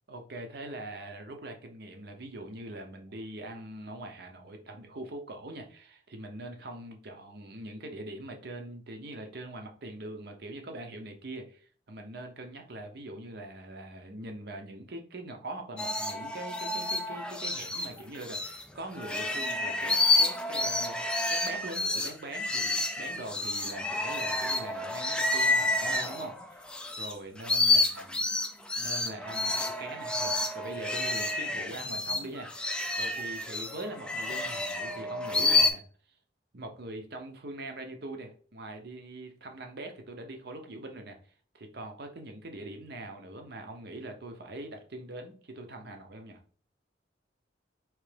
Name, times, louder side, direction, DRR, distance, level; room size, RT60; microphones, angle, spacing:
voice 1, 0.1-21.0 21.3-26.7 27.0-28.2 28.8-32.7 33.0-35.8 36.5-46.4, right 1 dB, 55° right, 4 dB, 0.8 m, -42 dB
sound 1, 15.8-18.6 19.0-27.1 27.4-35.7, left 2 dB, 5° left, 0.3 m, -29 dB
4.7 x 3.2 x 3.3 m, 0.44 s
head